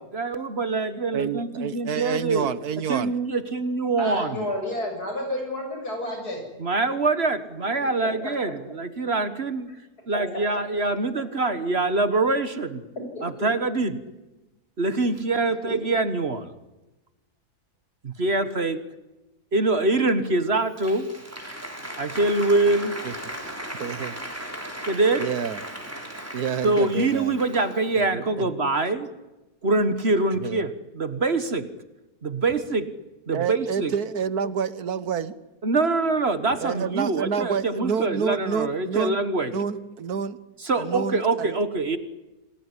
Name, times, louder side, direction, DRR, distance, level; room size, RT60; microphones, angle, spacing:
voice 1, 0.1-2.5 2.9-4.5 6.6-9.7 10.1-12.8 13.2-14.0 14.8-16.5 18.0-18.8 19.5-21.1 22.0-23.0 24.9-25.2 26.6-29.1 29.6-31.7 32.2-32.9 33.3-33.9 35.6-39.5 40.6-42.0, right 3 dB, 40° right, 12 dB, 1.6 m, -24 dB
voice 2, 1.1-3.1 23.0-23.1 23.8-24.2 25.2-25.6 26.3-27.4 27.9-28.5 30.4-30.7 33.3-35.3 36.6-39.2 39.5-40.4 40.7-41.6, right 7 dB, 75° right, 16 dB, 1.6 m, -28 dB
voice 3, 4.0-6.4 8.2-8.3 10.3-10.4 13.1-13.2 15.6-15.8, left 1 dB, 75° left, 3 dB, 8.4 m, -30 dB
Applause, 20.4-28.0, right 1 dB, 10° right, 3.7 m, -37 dB
28.0 x 19.0 x 9.9 m, 1.1 s
omnidirectional pair, 1.7 m